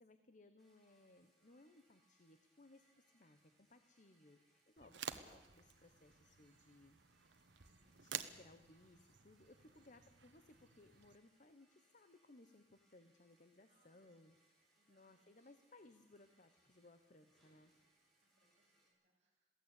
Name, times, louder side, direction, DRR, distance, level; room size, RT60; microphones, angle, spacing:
voice 1, 0.0-7.0 8.0-17.7, left 2 dB, 45° left, 10 dB, 1.1 m, -65 dB
sound 1, 0.6-18.9, right 1 dB, ahead, 6.7 m, -78 dB
sound 2, 4.8-11.2, right 8 dB, 90° right, 1.3 m, -52 dB
voice 2, 7.6-8.3 9.6-9.9 13.7-14.2 14.7-15.5 18.2-19.5, right 2 dB, 40° right, -3 dB, 7.4 m, -81 dB
22.5 x 16.5 x 8.4 m, 1.1 s
head